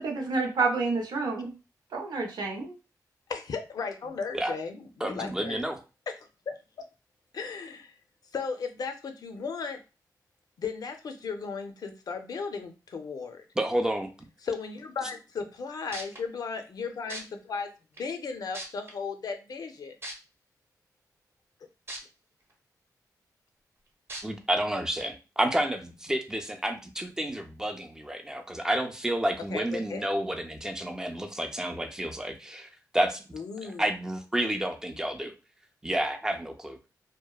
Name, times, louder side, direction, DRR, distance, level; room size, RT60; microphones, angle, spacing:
voice 1, 0.0-1.5 1.9-2.8, right 4 dB, 85° right, 2 dB, 0.6 m, -29 dB
voice 2, 3.3-5.6 6.1-6.2 6.5-6.6 7.3-8.0 8.3-9.8 10.6-13.4 14.4-17.7 18.0-20.0 29.5-30.0 33.3-33.9, left 5 dB, 65° left, 6 dB, 0.4 m, -35 dB
voice 3, 5.0-5.8 13.6-14.1 24.2-33.2 33.8-35.3 35.8-36.8, right 1 dB, 10° right, 5 dB, 0.4 m, -30 dB
sound 1, 15.6-15.7 15.9-16.2 17.1-17.2 18.0-18.1 18.5-18.9 20.0-20.1 21.9-22.0 22.5-22.6 24.1-24.2 25.0-25.1, right 1 dB, 35° right, 0.8 m, -37 dB
2.8 x 2.1 x 2.3 m, 0.30 s
wide cardioid pair, 95°, 7 cm